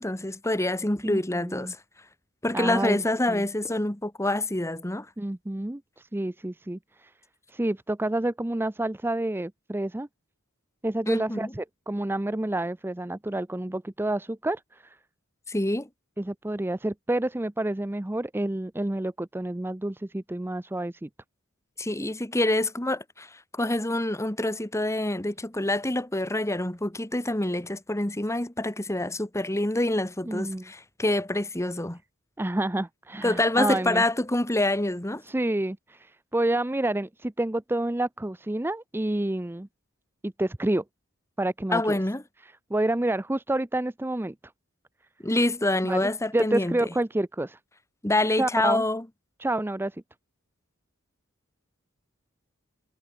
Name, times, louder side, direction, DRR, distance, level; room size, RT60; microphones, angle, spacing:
voice 1, 0.0-1.8 2.4-5.1 11.1-11.5 15.5-15.9 21.8-32.0 33.2-35.2 41.7-42.2 45.2-46.8 48.0-49.0, left 1 dB, 15° left, 1.7 m, -26 dB
voice 2, 1.0-1.7 2.5-3.4 5.2-7.1 7.5-10.1 10.8-15.0 16.2-21.1 30.2-30.7 32.4-34.0 35.2-39.7 40.2-40.8 41.4-42.0 42.4-44.3 45.8-47.6 48.4-48.8 49.4-50.0, right 1 dB, 10° right, 0.5 m, -29 dB
head